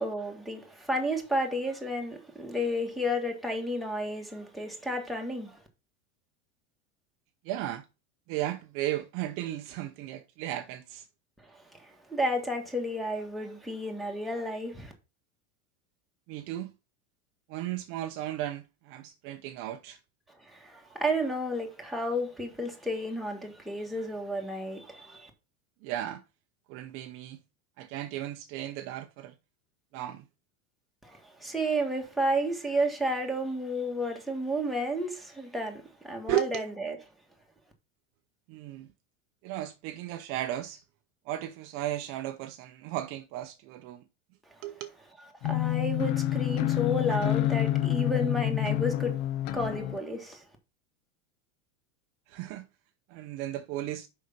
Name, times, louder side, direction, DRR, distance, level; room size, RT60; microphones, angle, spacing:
voice 1, 0.0-5.6 11.5-14.9 20.4-25.3 31.0-37.0 45.4-49.2 49.5-50.4, equal, ahead, 1.6 m, -32 dB
voice 2, 7.4-7.9 8.3-11.1 16.3-16.7 17.5-20.0 25.8-26.2 26.7-27.4 27.8-29.3 29.9-30.3 36.3-36.6 38.5-38.9 39.4-40.8 41.3-44.0 44.6-44.9 52.3-52.7 53.1-54.1, right 14 dB, 40° right, 0.7 m, -35 dB
sound 1, 45.4-50.0, left 14 dB, 50° left, 0.8 m, -28 dB
6.5 x 5.6 x 5.2 m
supercardioid pair, 150°, 33 cm